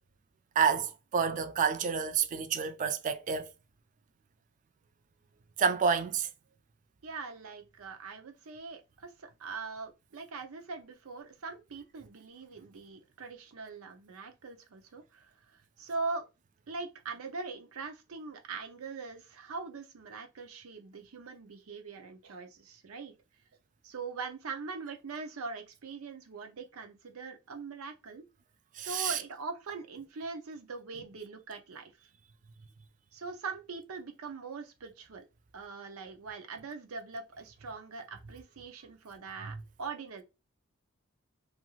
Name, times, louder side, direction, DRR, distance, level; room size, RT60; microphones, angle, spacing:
voice 1, 0.6-3.5 5.6-6.3 28.8-29.2, right 6 dB, 40° right, 0.3 m, -29 dB
voice 2, 7.0-16.2 16.7-23.1 23.8-28.2 28.8-31.9 33.1-35.3 35.5-40.2, right 4 dB, 85° right, 0.6 m, -42 dB
2.5 x 2.3 x 3.0 m
head